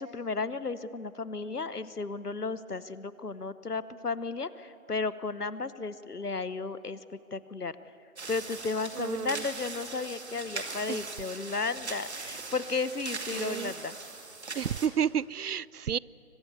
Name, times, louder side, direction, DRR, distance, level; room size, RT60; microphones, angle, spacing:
voice 1, 0.0-7.0 7.3-7.7 8.3-14.0, left 4 dB, 90° left, 1.1 m, -34 dB
sound 1, 8.2-14.9, right 3 dB, 45° right, 2.3 m, -40 dB
voice 2, 9.0-9.4 10.9-11.0 13.3-13.7 14.6-16.0, right 8 dB, 80° right, 0.5 m, -31 dB
23.5 x 20.5 x 8.0 m
figure-of-eight pair, 155°, 45 cm